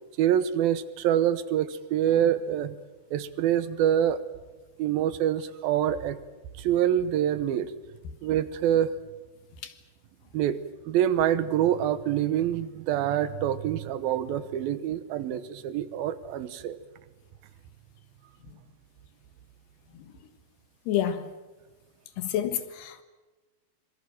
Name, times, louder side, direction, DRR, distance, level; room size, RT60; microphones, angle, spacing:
voice 1, 0.2-2.8 3.1-4.2 4.8-6.2 6.6-7.7 8.2-8.9 10.3-10.6 10.9-16.8, right 10 dB, 75° right, 2.7 m, -26 dB
voice 2, 20.9-21.3 22.2-23.0, left 10 dB, 90° left, 3.6 m, -29 dB
25.5 x 23.0 x 7.6 m
omnidirectional pair, 4.6 m